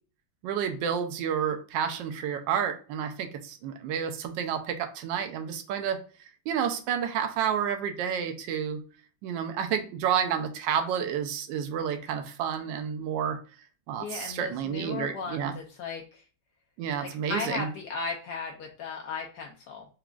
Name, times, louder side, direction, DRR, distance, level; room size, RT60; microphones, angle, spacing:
voice 1, 0.4-6.0 6.5-8.8 9.2-13.4 13.9-15.5 16.8-17.7, right 8 dB, 75° right, 6 dB, 1.2 m, -30 dB
voice 2, 14.0-16.2 17.0-19.9, left 4 dB, 75° left, 1 dB, 1.0 m, -36 dB
4.9 x 2.3 x 2.3 m, 0.40 s
omnidirectional pair, 2.1 m